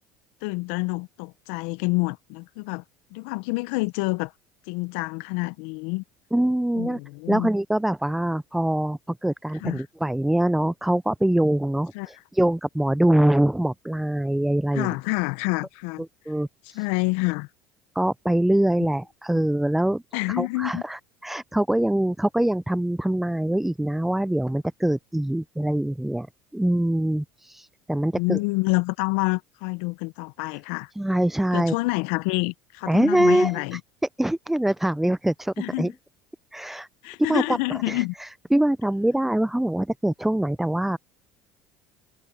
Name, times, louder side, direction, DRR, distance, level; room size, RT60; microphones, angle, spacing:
voice 1, 0.4-2.8 3.1-4.3 4.7-6.0 6.7-7.5 9.6-9.8 11.9-12.2 14.7-16.0 16.7-17.5 20.1-20.8 28.1-30.9 31.5-33.8 35.6-35.9 37.0-38.1, left 26 dB, 70° left, 0.9 m, -27 dB
voice 2, 6.3-7.0 7.3-14.9 16.3-16.8 18.0-20.0 20.4-26.3 26.5-28.4 31.0-31.7 32.9-33.8 34.2-35.9 36.5-36.9 37.3-37.6 37.9-41.0, right 1 dB, 5° right, 0.5 m, -24 dB
hypercardioid pair, 75°, 6 cm